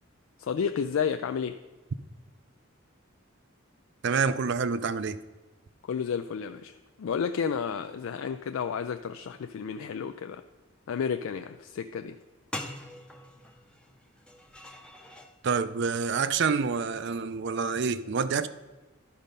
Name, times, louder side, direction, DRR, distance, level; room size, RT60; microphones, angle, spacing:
voice 1, 0.4-1.6 5.8-10.4 10.9-12.2, left 6 dB, 75° left, 0.3 m, -31 dB
voice 2, 4.0-5.2 15.4-18.5, right 5 dB, 55° right, 0.4 m, -27 dB
sound 1, 12.2-12.3 12.5-15.3 16.7-17.0, left 1 dB, 5° left, 0.6 m, -43 dB
11.5 x 5.4 x 5.2 m
head